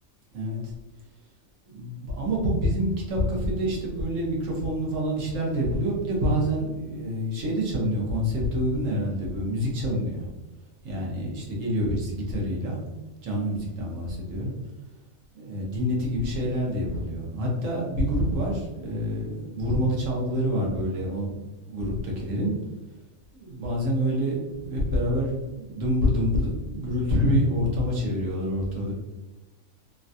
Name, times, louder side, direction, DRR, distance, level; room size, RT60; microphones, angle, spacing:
voice 1, 1.7-10.2 10.8-12.8 13.2-14.5 15.3-21.3 21.7-22.5 23.3-28.9, equal, 65° right, -3 dB, 1.2 m, -27 dB
3.2 x 2.3 x 2.6 m, 1.1 s
omnidirectional pair, 1.5 m